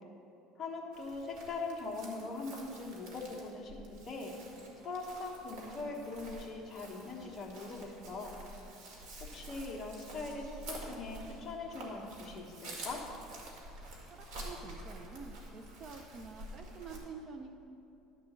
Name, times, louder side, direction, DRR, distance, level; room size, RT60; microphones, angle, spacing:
voice 1, 0.6-3.8 4.1-4.3 4.8-8.4 9.3-13.0, left 3 dB, 25° left, -1 dB, 1.1 m, -41 dB
Chirp tweet, 0.9-17.0, right 1 dB, 65° right, 1.9 m, -49 dB
voice 2, 14.1-17.6, right 4 dB, 35° right, 5 dB, 0.5 m, -48 dB
11.0 x 3.7 x 7.2 m, 2.8 s
cardioid pair, 155°, 0 cm